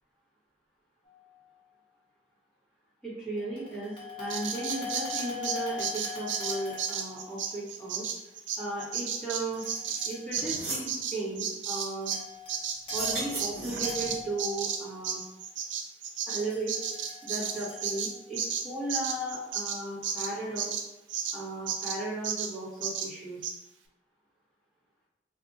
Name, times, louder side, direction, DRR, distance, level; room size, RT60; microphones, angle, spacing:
sound 1, 1.1-1.3 3.4-7.3 9.5-10.4 12.0-12.6 12.9-14.8 16.4-18.1, left 6 dB, 30° left, 0.9 m, -41 dB
voice 1, 3.0-8.1 8.6-9.6 10.0-12.2 12.9-15.2 16.3-16.7 17.2-20.7 21.3-23.4, right 2 dB, 5° left, -13 dB, 1.4 m, -36 dB
Bird vocalization bird call bird song, 4.3-12.2 12.5-21.4 21.7-22.0 22.2-22.5 22.8-23.1 23.4-23.5, right 7 dB, 80° right, 0.4 m, -33 dB
sound 2, 10.0-10.1 10.4-10.9 12.8-14.2, right 2 dB, 55° right, 1.0 m, -35 dB
2.8 x 2.5 x 3.8 m, 0.90 s
head